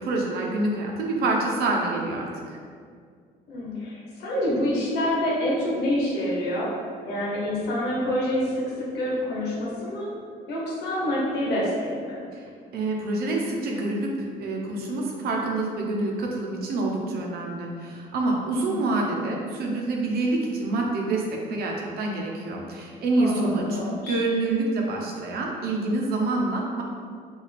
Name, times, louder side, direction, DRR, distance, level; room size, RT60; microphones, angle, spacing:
voice 1, 0.0-2.6 12.3-12.4 12.7-21.2 21.5-23.8 24.1-26.8, right 2 dB, 70° right, -1 dB, 0.9 m, -27 dB
voice 2, 3.5-6.7 7.0-10.1 10.5-12.2 18.6-18.8 23.2-24.2, left 1 dB, 80° left, -5 dB, 1.1 m, -27 dB
5.7 x 2.7 x 3.4 m, 2.1 s
cardioid pair, 110°, 17 cm